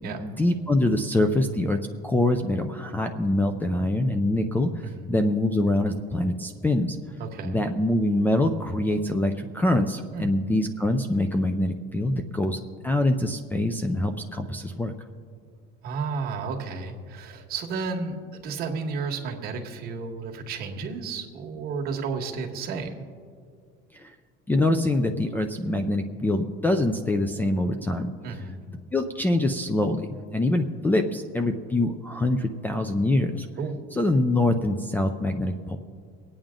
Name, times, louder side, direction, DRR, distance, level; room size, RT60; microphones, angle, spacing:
voice 1, 0.0-7.0 7.4-14.9 23.9-24.1 24.5-28.1 28.9-33.5 33.9-35.8, left 1 dB, 10° left, 7 dB, 0.4 m, -24 dB
voice 2, 4.8-5.1 7.2-7.6 10.1-10.3 15.8-18.2 18.4-23.0 28.2-28.6 33.6-34.0, right 4 dB, 45° right, 2 dB, 1.5 m, -32 dB
24.0 x 8.9 x 3.7 m, 2.1 s
cardioid pair, 160°, 21 cm